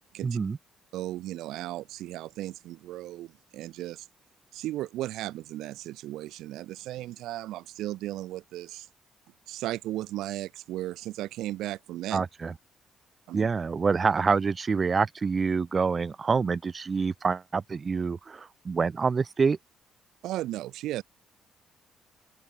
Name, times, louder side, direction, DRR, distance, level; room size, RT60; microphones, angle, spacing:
voice 1, 0.2-0.6 12.1-12.5 13.3-19.6, right 5 dB, 35° right, 5.2 m, -26 dB
voice 2, 0.9-4.1 4.5-8.9 9.5-12.2 13.3-13.5 20.2-21.0, right 15 dB, 90° right, 3.0 m, -35 dB
open air
cardioid pair, 90°, 0 cm